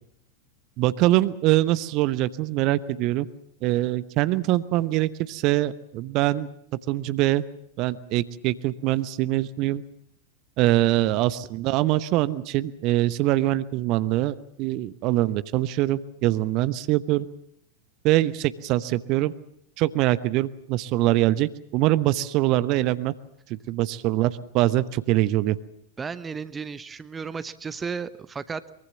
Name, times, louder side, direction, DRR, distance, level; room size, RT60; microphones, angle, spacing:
voice 1, 0.8-3.3 3.6-6.5 6.9-7.4 7.8-9.8 10.6-17.3 18.0-19.3 19.8-23.1 23.5-25.6, right 16 dB, 40° right, 15 dB, 1.0 m, -23 dB
voice 2, 26.0-28.7, right 5 dB, 15° right, 15 dB, 1.0 m, -34 dB
23.5 x 23.5 x 7.3 m, 0.70 s
figure-of-eight pair, 90°, 0 cm